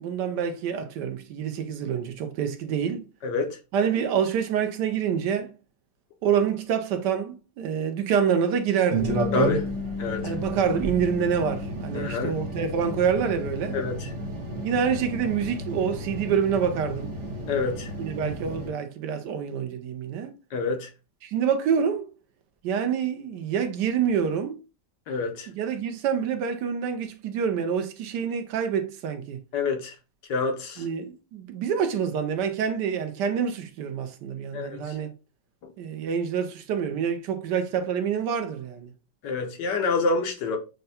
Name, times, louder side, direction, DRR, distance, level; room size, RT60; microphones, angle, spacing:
voice 1, 0.0-3.1 3.7-5.5 6.2-9.1 10.2-13.8 14.6-17.1 18.0-20.3 21.2-22.1 22.6-24.6 25.5-29.4 30.8-35.1 35.8-38.9, right 7 dB, 75° right, 1.1 m, -27 dB
voice 2, 3.2-3.6 9.3-9.7 10.0-10.3 11.9-12.3 13.7-14.1 17.5-17.9 20.5-20.9 25.1-25.5 29.5-29.9 30.3-30.8 34.5-34.9 39.2-40.6, left 4 dB, 75° left, 1.4 m, -27 dB
sound 1, 8.9-18.7, right 2 dB, 45° right, 1.1 m, -32 dB
Bass guitar, 9.1-15.3, left 5 dB, 45° left, 0.5 m, -37 dB
6.5 x 2.2 x 2.7 m
omnidirectional pair, 2.0 m